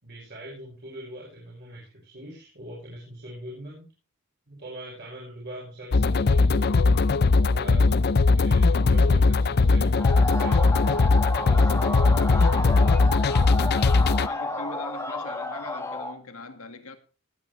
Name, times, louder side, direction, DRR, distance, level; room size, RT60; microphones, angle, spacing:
voice 1, 0.0-3.8 4.5-7.9 8.4-10.8 11.4-13.1, right 1 dB, 50° right, 5.8 m, -42 dB
sound 1, 5.9-14.3, left 3 dB, 45° left, 0.5 m, -20 dB
sound 2, 10.0-16.2, left 2 dB, 10° left, 1.6 m, -31 dB
voice 2, 14.0-17.0, left 3 dB, 70° left, 1.9 m, -41 dB
18.5 x 9.1 x 3.3 m
head